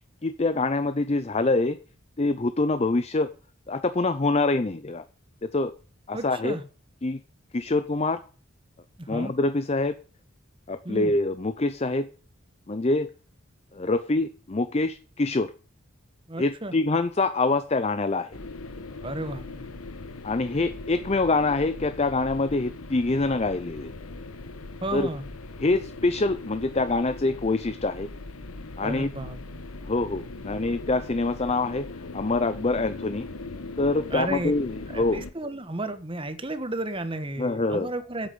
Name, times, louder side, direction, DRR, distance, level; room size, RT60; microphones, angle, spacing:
voice 1, 0.2-1.8 2.2-3.3 3.7-5.0 5.4-5.7 6.1-6.6 7.0-7.2 7.5-8.2 9.1-10.0 10.7-12.1 12.7-13.1 13.7-15.5 16.4-18.4 20.2-23.9 24.9-25.1 25.6-28.1 28.8-29.1 29.8-31.9 32.1-33.3 33.8-35.2 37.4-37.9, left 2 dB, 30° left, 12 dB, 0.5 m, -25 dB
voice 2, 6.1-6.6 9.0-9.3 10.8-11.1 16.3-16.7 19.0-19.7 24.8-25.2 28.8-29.4 34.1-34.5 34.9-38.3, right 1 dB, 25° right, 10 dB, 1.3 m, -33 dB
sound 1, 18.3-35.3, left 2 dB, 90° left, 1.2 m, -40 dB
8.9 x 8.4 x 8.9 m, 0.39 s
head